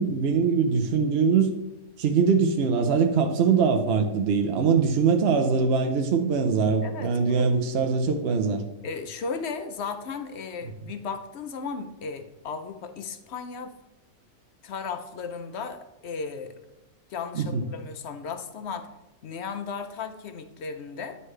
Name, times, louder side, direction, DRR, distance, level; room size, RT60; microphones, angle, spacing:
voice 1, 0.0-1.5 2.0-8.6 17.3-17.7, right 5 dB, 60° right, 5 dB, 0.7 m, -22 dB
voice 2, 6.8-7.5 8.8-13.7 14.6-16.6 17.1-18.9 19.2-21.2, left 5 dB, 60° left, 9 dB, 0.8 m, -35 dB
9.7 x 5.5 x 3.2 m, 0.99 s
omnidirectional pair, 1.5 m